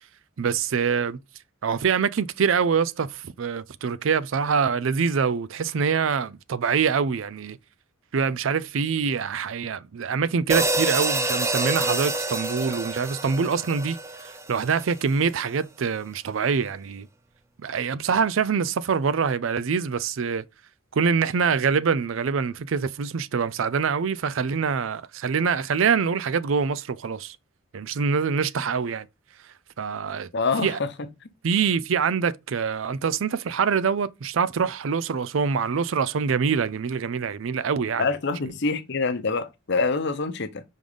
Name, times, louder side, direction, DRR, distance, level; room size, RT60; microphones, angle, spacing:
voice 1, 0.4-1.2 1.6-7.6 8.1-17.1 17.6-20.4 20.9-27.4 27.7-29.1 29.8-30.3 30.6-30.8 31.4-38.0, right 6 dB, 70° right, 0.4 m, -25 dB
sound 1, 10.5-14.9, right 2 dB, 15° right, 0.5 m, -27 dB
voice 2, 30.3-30.9 38.0-40.6, left 4 dB, 60° left, 0.8 m, -25 dB
5.4 x 3.8 x 5.0 m
head